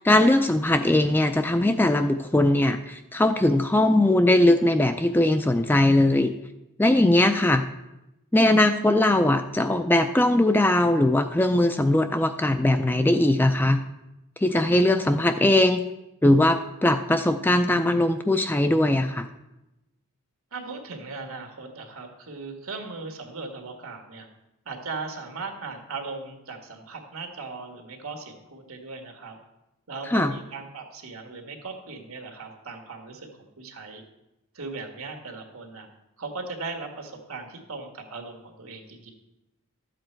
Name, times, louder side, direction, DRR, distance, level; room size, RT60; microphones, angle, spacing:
voice 1, 0.0-6.3 6.8-7.6 8.3-13.8 14.4-15.9 16.2-19.3 30.1-30.3, left 1 dB, 10° left, 8 dB, 0.3 m, -20 dB
voice 2, 20.5-24.3 24.6-29.4 29.9-34.0 34.5-35.9 36.2-39.1, right 3 dB, 75° right, 4 dB, 1.7 m, -38 dB
12.0 x 7.6 x 4.5 m, 0.93 s
head